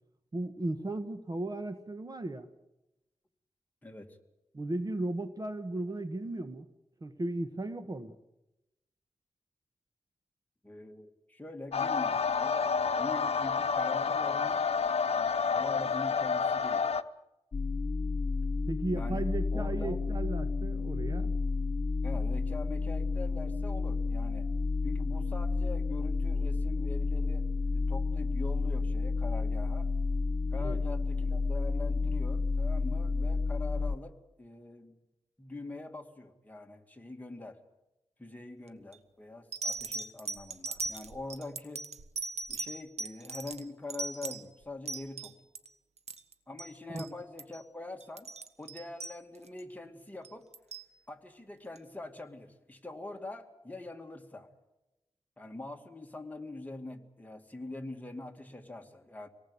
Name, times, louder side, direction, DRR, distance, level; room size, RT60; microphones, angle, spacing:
voice 1, 0.3-2.5 4.5-6.7 7.0-8.1 18.7-21.3 30.6-30.8 46.9-47.0, right 2 dB, 35° right, 9 dB, 1.3 m, -35 dB
voice 2, 3.8-4.2 10.6-12.6 13.0-14.6 15.2-16.9 18.9-19.3 19.5-20.0 22.0-24.5 24.8-27.5 27.7-29.9 30.5-34.9 35.4-37.6 38.2-41.8 42.5-45.3 46.5-48.3 48.6-50.5 51.1-54.5 55.4-59.3, left 2 dB, 15° left, 4 dB, 2.4 m, -44 dB
sound 1, 11.7-17.0, left 5 dB, 70° left, 0.9 m, -29 dB
sound 2, 17.5-34.0, left 3 dB, 45° left, 0.9 m, -31 dB
sound 3, 38.7-39.0 39.5-45.7 46.0-46.7 47.0-47.1 47.4-47.6 48.0-49.6 50.2-50.9 51.8-51.9, right 3 dB, 85° right, 1.5 m, -39 dB
25.5 x 19.0 x 8.4 m, 0.95 s
wide cardioid pair, 100°, 11 cm